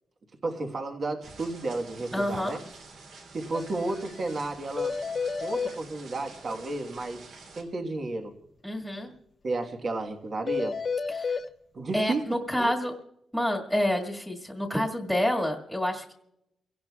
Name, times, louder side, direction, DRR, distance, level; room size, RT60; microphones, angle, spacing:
voice 1, 0.4-2.6 3.3-4.9 5.4-7.2 7.6-8.3 9.4-10.8 11.7-12.2 12.6-12.7, right 2 dB, 40° right, 3 dB, 1.4 m, -32 dB
sound 1, 1.2-7.6, right 3 dB, 80° right, 3.1 m, -48 dB
voice 2, 2.1-2.6 8.6-9.1 11.1-11.4 11.9-12.9 13.3-16.1, left 1 dB, 5° right, -1 dB, 1.9 m, -28 dB
sound 2, 3.5-3.6 3.9-4.0 4.3-4.4 4.8-5.7 10.5-11.4, left 5 dB, 35° left, 0.6 m, -30 dB
29.5 x 17.0 x 2.4 m, 0.83 s
wide cardioid pair, 140°, 0 cm